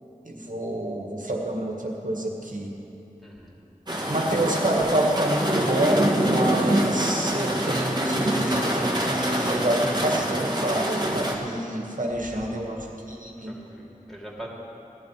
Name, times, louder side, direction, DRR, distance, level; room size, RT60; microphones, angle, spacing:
voice 1, 0.2-2.8 4.1-12.8 13.1-13.5, right 1 dB, 65° right, 0 dB, 1.9 m, -27 dB
voice 2, 3.2-3.6 12.1-12.9 13.4-14.5, right 1 dB, ahead, -4 dB, 3.0 m, -43 dB
sound 1, 3.9-11.3, equal, 30° right, 1.8 m, -25 dB
16.5 x 11.0 x 5.1 m, 3.0 s
wide cardioid pair, 45°, 14 cm